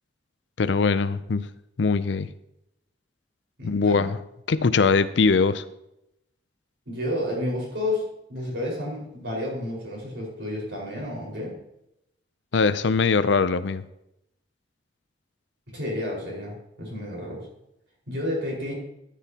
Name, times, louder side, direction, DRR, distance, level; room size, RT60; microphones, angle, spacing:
voice 1, 0.6-1.5 1.8-2.3 3.6-4.2 4.5-5.6 12.5-13.8, left 4 dB, 75° left, 13 dB, 0.5 m, -21 dB
voice 2, 3.6-4.1 6.9-11.5 15.7-16.5 16.8-17.5 18.1-18.7, left 1 dB, 70° right, -3 dB, 4.9 m, -31 dB
13.5 x 10.0 x 2.9 m, 0.83 s
head